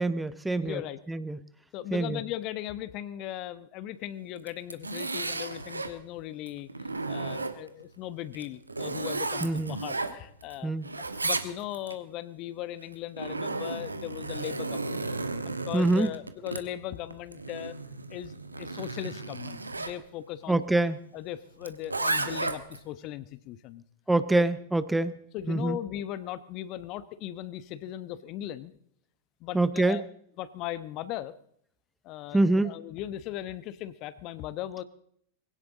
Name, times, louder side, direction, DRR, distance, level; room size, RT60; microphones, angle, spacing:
voice 1, 0.0-0.8 1.1-1.4 1.9-2.2 9.4-9.8 10.6-10.9 15.7-16.1 20.5-21.0 24.1-25.1 25.5-25.8 29.5-30.0 32.3-32.7, right 2 dB, 5° right, 14 dB, 0.7 m, -25 dB
voice 2, 0.6-1.0 1.7-10.7 11.0-15.0 15.4-17.7 18.1-20.6 21.1-23.8 24.3-24.4 25.3-28.7 29.4-30.0 30.4-31.3 32.0-34.8, left 13 dB, 40° left, 15 dB, 1.0 m, -38 dB
Zipper (clothing), 4.4-6.0 6.5-7.8 8.3-10.5 10.8-11.9 12.8-20.0 21.6-22.8, right 3 dB, 80° right, 1.2 m, -34 dB
21.5 x 17.0 x 4.0 m, 0.67 s
figure-of-eight pair, 90°, 0 cm